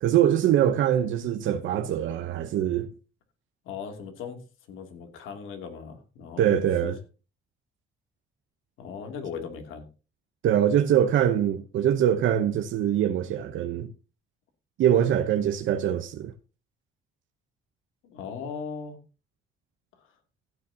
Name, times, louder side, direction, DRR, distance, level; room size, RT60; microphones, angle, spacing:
voice 1, 0.0-2.9 6.4-7.0 10.4-13.9 14.8-16.3, right 10 dB, 80° right, 0.9 m, -23 dB
voice 2, 3.6-4.4 4.7-6.5 6.8-6.9 8.8-9.9 18.0-19.0, left 6 dB, 90° left, 2.7 m, -38 dB
15.5 x 9.3 x 2.8 m
cardioid pair, 90°, 20 cm